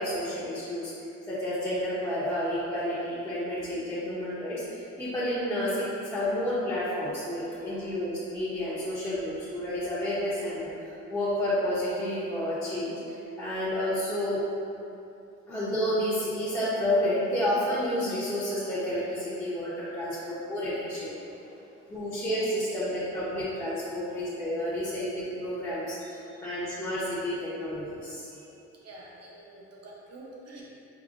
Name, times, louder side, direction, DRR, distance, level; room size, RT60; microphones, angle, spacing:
voice 1, 0.0-14.4 15.5-21.1 21.9-28.3, left 1 dB, 10° left, -12 dB, 0.7 m, -30 dB
voice 2, 7.5-7.9 15.5-15.6 21.0-22.2 23.9-24.4 26.0-26.7 27.1-27.2 28.3-28.6 28.8-30.6, right 2 dB, 55° right, -4 dB, 0.8 m, -51 dB
4.9 x 2.1 x 2.5 m, 2.8 s
cardioid pair, 90°, 30 cm